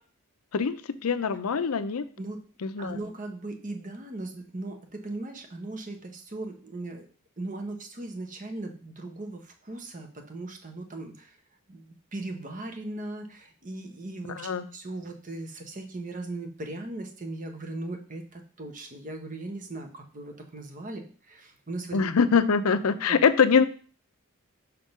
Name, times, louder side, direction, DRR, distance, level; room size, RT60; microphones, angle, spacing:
voice 1, 0.5-2.1 2.6-3.0 14.4-14.7 21.9-23.6, left 5 dB, 80° left, 12 dB, 0.6 m, -23 dB
voice 2, 2.8-7.1 7.4-11.4 11.7-22.0 22.3-22.4 23.1-23.2, right 2 dB, 35° right, 5 dB, 1.0 m, -38 dB
5.9 x 3.6 x 5.3 m, 0.40 s
head